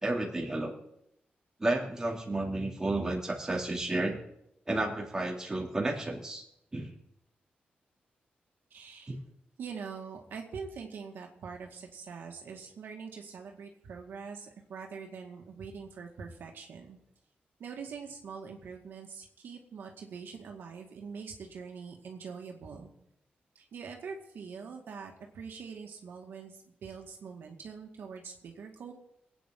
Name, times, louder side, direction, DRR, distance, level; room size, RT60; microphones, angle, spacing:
voice 1, 0.0-0.7 1.6-4.2 4.7-6.4 6.7-6.9 9.1-9.2, right 2 dB, 15° right, -1 dB, 2.9 m, -31 dB
voice 2, 8.7-9.2 9.6-17.0 17.6-22.9 23.6-28.9, right 5 dB, 85° right, 1 dB, 2.1 m, -44 dB
24.0 x 9.2 x 3.9 m, 0.78 s
wide cardioid pair, 130°, 3 cm